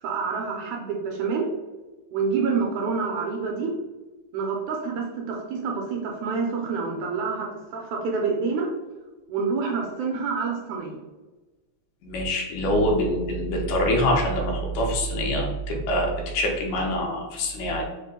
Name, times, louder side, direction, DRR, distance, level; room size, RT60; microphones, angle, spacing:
voice 1, 0.0-1.5 2.1-3.7 4.3-8.7 9.3-11.0, right 5 dB, 75° right, 0 dB, 1.9 m, -27 dB
voice 2, 12.0-17.9, equal, 75° left, 0 dB, 2.2 m, -25 dB
5.4 x 2.1 x 3.6 m, 1.2 s
omnidirectional pair, 3.6 m